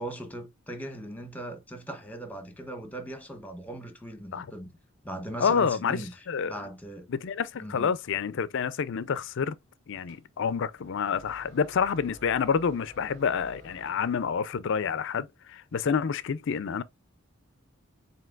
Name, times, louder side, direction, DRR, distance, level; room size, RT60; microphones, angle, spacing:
voice 1, 0.0-4.7 5.0-6.1 6.4-7.1 7.6-7.9, right 1 dB, 10° left, 0.9 m, -39 dB
voice 2, 5.4-6.0 6.3-6.6 7.1-9.6 9.9-16.8, left 6 dB, 60° left, 0.4 m, -28 dB
sound 1, 10.1-14.6, left 1 dB, 65° right, 2.0 m, -52 dB
7.5 x 2.8 x 2.4 m
head